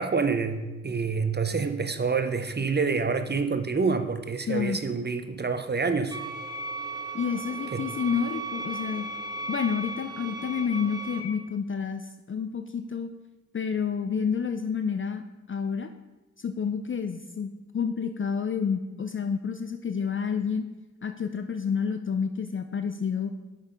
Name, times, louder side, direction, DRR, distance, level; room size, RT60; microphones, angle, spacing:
voice 1, 0.0-6.2 7.7-7.8, right 4 dB, 35° right, 9 dB, 0.6 m, -27 dB
voice 2, 4.5-4.8 7.1-9.1 9.5-13.1 13.5-15.9 16.4-20.7 21.0-23.3, left 6 dB, 40° left, 8 dB, 0.4 m, -29 dB
sound 1, 6.1-11.2, right 3 dB, 15° right, 1.5 m, -36 dB
6.3 x 5.6 x 5.1 m, 1.1 s
cardioid pair, 55°, 30 cm